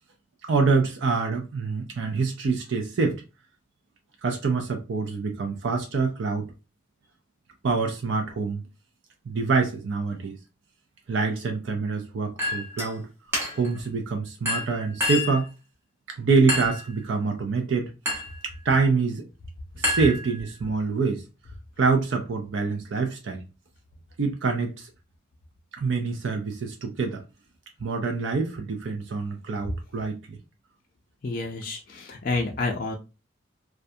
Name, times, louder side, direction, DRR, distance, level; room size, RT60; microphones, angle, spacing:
voice 1, 0.4-3.2 4.2-6.5 7.6-8.6 9.3-10.4 11.1-13.1 13.6-15.5 16.1-17.9 18.4-19.2 19.8-21.2 21.8-23.4 24.2-24.9 25.7-27.2 27.8-30.4, right 4 dB, 60° right, 0.4 m, -26 dB
Chink clink, 12.4-12.9 13.3-13.8 14.5-15.4 16.5-16.9 18.1-18.4 19.8-20.6, left 1 dB, 10° right, 0.8 m, -28 dB
voice 2, 31.2-33.0, left 3 dB, 40° left, 0.4 m, -29 dB
2.4 x 2.2 x 2.6 m
head